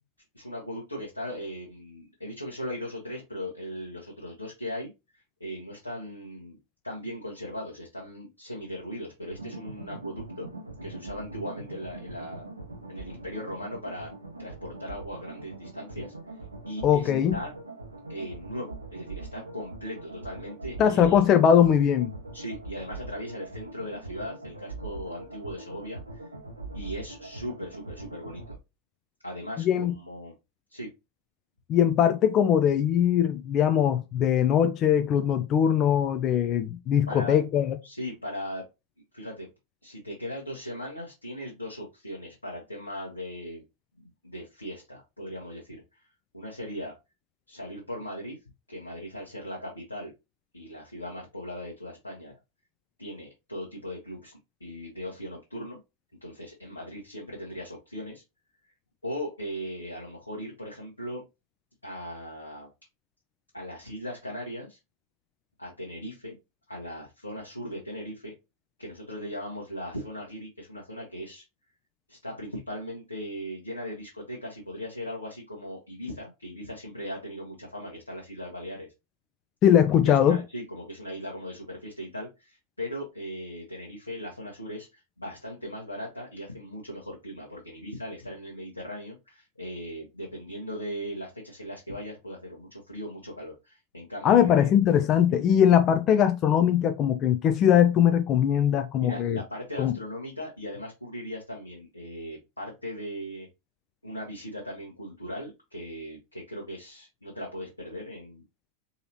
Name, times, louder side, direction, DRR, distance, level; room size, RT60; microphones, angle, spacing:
voice 1, 0.3-6.6 6.8-10.5 10.8-12.5 12.9-14.1 14.4-16.1 16.6-17.5 18.1-21.2 22.3-26.3 26.7-28.6 29.2-30.3 30.7-30.9 37.1-37.4 37.8-38.7 39.1-39.5 39.8-43.6 44.0-46.0 46.3-46.9 47.5-48.4 48.7-50.1 50.5-52.3 53.0-55.8 56.2-58.2 59.0-61.2 61.8-62.7 63.5-64.8 65.6-66.4 66.7-68.3 68.8-71.4 72.1-78.9 79.9-94.7 95.3-95.4 99.0-103.5 104.0-108.4, equal, 85° left, 1.1 m, -38 dB
sound 1, 9.3-28.6, right 3 dB, 80° right, 0.6 m, -42 dB
voice 2, 16.8-17.4 20.8-22.1 29.6-29.9 31.7-37.8 79.6-80.4 94.2-99.4 99.8-99.9, left 9 dB, 35° left, 0.3 m, -21 dB
3.9 x 2.9 x 2.8 m
figure-of-eight pair, 90°, 0 cm